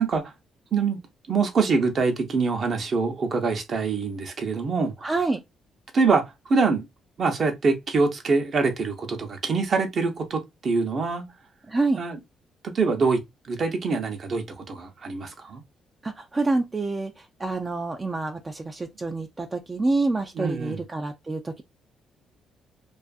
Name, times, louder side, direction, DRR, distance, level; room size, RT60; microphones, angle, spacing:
voice 1, 1.3-5.1 5.9-6.8 7.2-11.2 12.0-12.2 12.6-15.6 20.4-20.8, right 4 dB, 50° right, 0.7 m, -25 dB
voice 2, 5.0-5.4 11.7-12.0 16.0-21.6, right 3 dB, 25° right, 0.3 m, -27 dB
2.5 x 2.4 x 2.3 m
cardioid pair, 90°, 0 cm